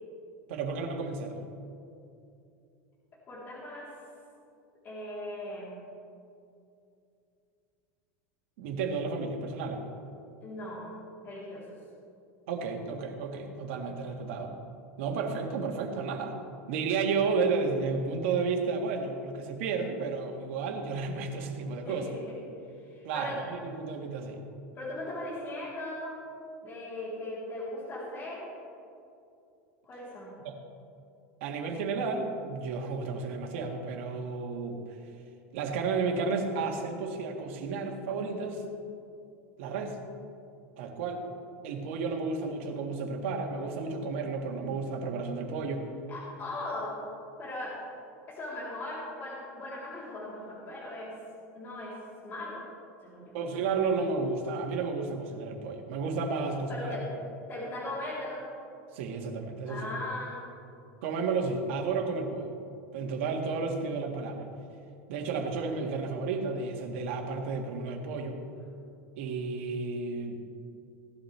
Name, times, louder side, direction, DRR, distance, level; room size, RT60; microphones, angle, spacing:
voice 1, 0.5-1.4 8.6-9.8 12.5-14.5 15.0-16.4 16.7-22.1 23.0-24.4 30.4-30.6 31.4-34.8 35.5-38.6 39.6-40.0 40.8-41.2 41.6-45.9 53.3-57.0 58.9-59.9 61.0-62.5 62.9-64.5 65.1-68.4 69.2-70.4, right 4 dB, 70° right, 2 dB, 1.8 m, -32 dB
voice 2, 3.3-3.9 4.8-5.7 10.4-10.9 11.2-11.8 21.8-22.1 22.6-23.4 24.8-26.1 26.6-28.5 29.8-30.4 46.1-47.0 47.4-47.8 48.3-51.1 51.5-52.0 52.2-52.6 53.0-53.4 56.7-57.1 57.5-58.5 59.6-60.4, left 1 dB, 30° left, -7 dB, 3.5 m, -38 dB
17.5 x 11.5 x 3.4 m, 2.6 s
supercardioid pair, 160°, 7 cm